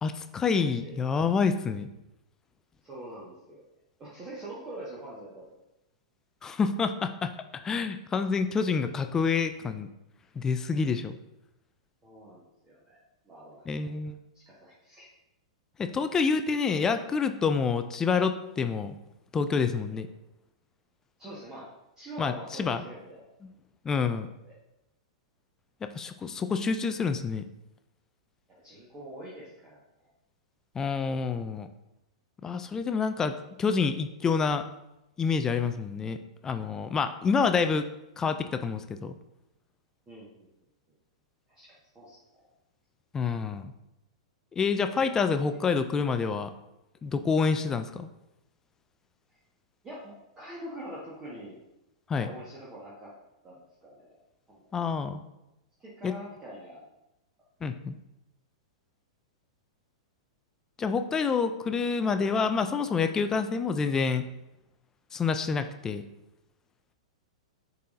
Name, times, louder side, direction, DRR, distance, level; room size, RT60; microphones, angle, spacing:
voice 1, 0.0-1.9 6.4-7.3 7.6-9.9 10.4-11.2 13.7-14.2 15.8-19.0 19.3-20.1 22.2-22.8 23.8-24.3 25.8-27.4 30.8-31.7 32.4-34.6 35.2-36.2 36.4-37.9 38.2-39.2 43.1-43.7 44.5-46.5 47.0-48.1 52.1-52.3 54.7-55.2 56.0-56.1 57.6-58.0 60.8-64.2 65.1-66.0, left 5 dB, 15° left, 8 dB, 0.3 m, -27 dB
voice 2, 0.6-1.0 2.8-3.6 4.0-5.6 12.0-13.9 14.3-15.1 19.9-20.0 21.2-21.7 22.0-23.3 24.4-24.5 28.6-30.1 40.1-40.5 41.5-42.4 49.8-51.6 52.2-53.1 53.4-54.2 54.5-54.7 55.8-56.8, right 1 dB, 20° right, -6 dB, 1.4 m, -45 dB
10.0 x 4.0 x 2.6 m, 0.91 s
figure-of-eight pair, 100°, 3 cm